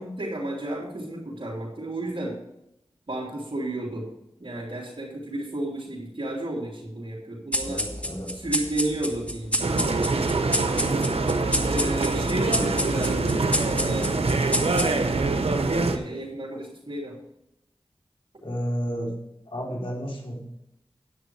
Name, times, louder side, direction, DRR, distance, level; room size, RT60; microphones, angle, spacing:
voice 1, 0.0-2.4 3.1-4.1 4.4-7.8 8.4-10.3 11.6-14.1 14.5-15.4 15.9-17.2, right 1 dB, 60° right, -7 dB, 3.1 m, -32 dB
sound 1, 7.5-15.3, equal, 15° left, 2.0 m, -29 dB
voice 2, 7.6-8.5 18.4-19.2 19.5-20.4, equal, 65° left, -1 dB, 3.9 m, -32 dB
sound 2, 9.6-16.0, right 3 dB, 85° right, 1.1 m, -24 dB
10.0 x 9.4 x 4.7 m, 0.83 s
cardioid pair, 40°, 10 cm